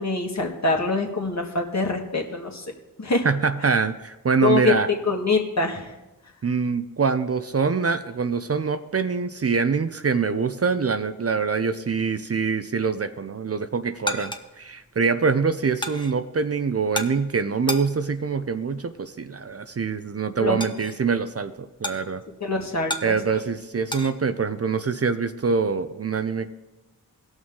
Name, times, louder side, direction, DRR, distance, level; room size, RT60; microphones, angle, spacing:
voice 1, 0.0-2.7 3.0-3.3 4.4-4.7 5.1-5.9 20.4-20.6 22.4-23.2, left 3 dB, 45° left, 1 dB, 1.8 m, -24 dB
voice 2, 3.2-4.9 6.4-22.2 23.0-26.5, right 5 dB, 40° right, 10 dB, 0.6 m, -24 dB
sound 1, 13.7-24.1, left 1 dB, 10° left, 1.0 m, -36 dB
17.0 x 6.2 x 3.7 m, 1.0 s
cardioid pair, 45°, 36 cm